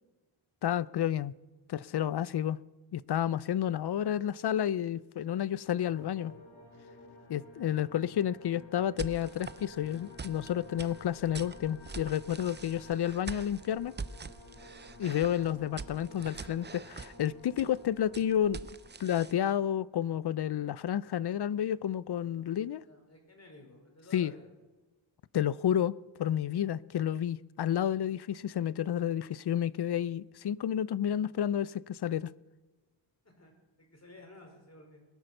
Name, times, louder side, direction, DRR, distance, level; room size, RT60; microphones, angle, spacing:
voice 1, 0.6-1.3 1.7-2.6 2.9-6.3 7.3-13.9 15.0-18.7 19.0-22.8 24.1-24.3 25.3-25.9 26.2-32.3, left 10 dB, 55° left, 0.5 m, -30 dB
sound 1, 5.9-19.9, left 2 dB, 75° left, 4.7 m, -53 dB
sound 2, 9.0-19.3, right 4 dB, 25° right, 0.5 m, -45 dB
voice 2, 22.8-24.5 33.2-33.5 33.8-35.0, left 2 dB, 30° left, 4.5 m, -54 dB
21.0 x 8.2 x 6.6 m
wide cardioid pair, 80°, 48 cm